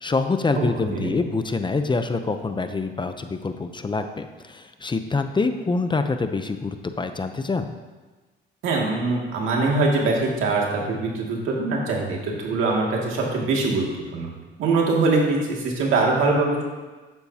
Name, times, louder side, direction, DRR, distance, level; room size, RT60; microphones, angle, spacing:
voice 1, 0.0-7.7, left 3 dB, 25° left, 8 dB, 0.6 m, -26 dB
voice 2, 0.6-1.1 8.6-13.9 14.1-14.3 14.6-16.6, right 3 dB, 85° right, -2 dB, 2.3 m, -23 dB
12.0 x 9.1 x 2.8 m, 1.3 s
cardioid pair, 90°, 20 cm